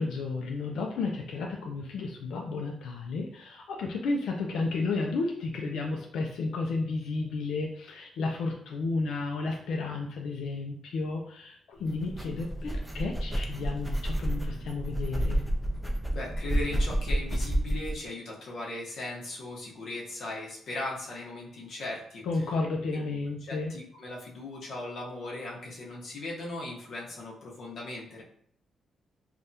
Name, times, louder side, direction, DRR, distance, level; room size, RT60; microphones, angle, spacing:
voice 1, 0.0-15.4 22.3-23.7, left 3 dB, 85° left, 1 dB, 0.4 m, -32 dB
sound 1, 11.8-18.0, right 1 dB, ahead, 0.4 m, -30 dB
voice 2, 16.1-22.5 22.9-23.0 23.4-28.2, left 2 dB, 55° left, -3 dB, 0.9 m, -38 dB
3.3 x 2.3 x 2.7 m, 0.65 s
wide cardioid pair, 160°, 0 cm